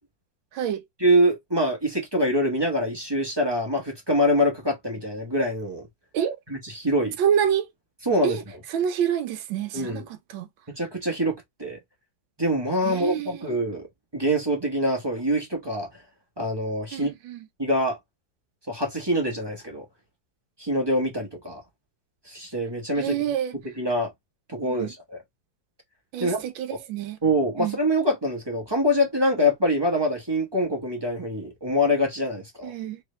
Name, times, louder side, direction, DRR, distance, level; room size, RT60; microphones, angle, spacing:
voice 1, 1.0-5.8 6.5-7.2 8.0-8.4 9.7-10.0 10.8-11.8 12.4-13.9 14.1-15.9 16.4-17.1 17.6-18.0 18.7-19.8 20.6-21.6 22.3-23.2 23.8-24.1 24.5-25.2 26.2-26.4 27.2-32.7, equal, 20° right, 0.8 m, -24 dB
voice 2, 7.2-7.7 8.2-8.4 8.7-10.5 12.8-13.4 16.9-17.4 23.0-23.5 24.6-24.9 26.1-27.2 27.6-27.8 32.6-33.0, right 9 dB, 80° right, 1.4 m, -27 dB
3.3 x 3.3 x 3.1 m
omnidirectional pair, 2.1 m